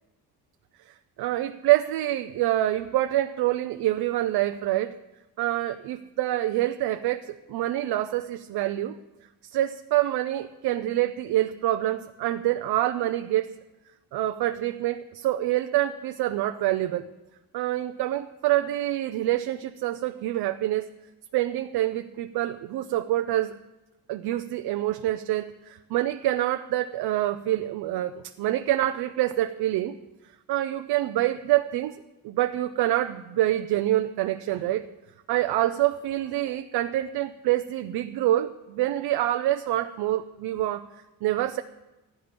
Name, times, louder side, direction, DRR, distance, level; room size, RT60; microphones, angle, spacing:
voice 1, 0.9-5.0 5.4-8.9 9.5-13.5 14.1-17.1 17.5-20.9 21.3-23.5 24.1-30.0 30.5-34.9 35.3-40.9 41.2-41.6, right 14 dB, 85° right, 7 dB, 0.7 m, -26 dB
15.0 x 12.0 x 5.2 m, 1.1 s
cardioid pair, 125°, 37 cm